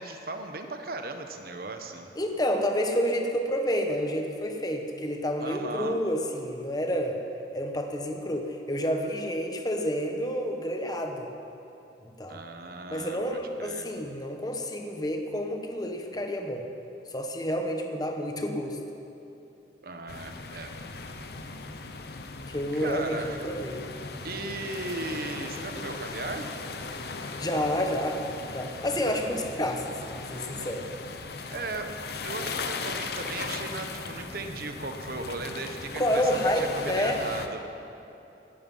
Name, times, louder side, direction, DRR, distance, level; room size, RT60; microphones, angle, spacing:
voice 1, 0.0-2.1 5.4-6.0 12.3-13.9 19.8-20.7 22.7-23.5 24.2-26.5 31.5-37.6, right 3 dB, 55° right, 6 dB, 1.2 m, -37 dB
voice 2, 2.2-7.2 7.5-11.3 12.0-12.4 12.9-16.6 17.1-18.8 22.5-23.8 27.2-28.2 28.5-30.8 36.0-37.2, equal, 20° left, 4 dB, 1.2 m, -29 dB
sound 1, 20.1-37.5, left 4 dB, 60° left, 1.0 m, -38 dB
17.0 x 12.0 x 5.6 m, 2.9 s
head